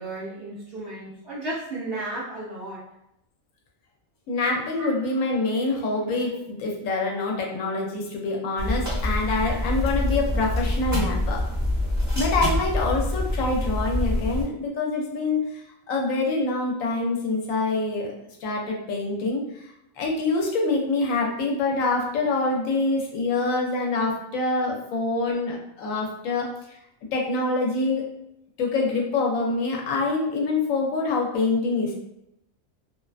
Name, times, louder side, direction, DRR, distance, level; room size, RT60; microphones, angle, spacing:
voice 1, 0.0-2.8 4.8-4.9, right 2 dB, 65° right, -5 dB, 0.6 m, -34 dB
voice 2, 4.3-11.4 12.1-15.6 15.9-18.1 18.4-19.4 20.0-26.8 27.1-28.0 28.6-31.9, left 3 dB, 75° left, 0 dB, 1.0 m, -25 dB
sound 1, 8.6-14.4, left 1 dB, 15° right, 0.6 m, -26 dB
2.5 x 2.1 x 2.3 m, 0.83 s
omnidirectional pair, 1.4 m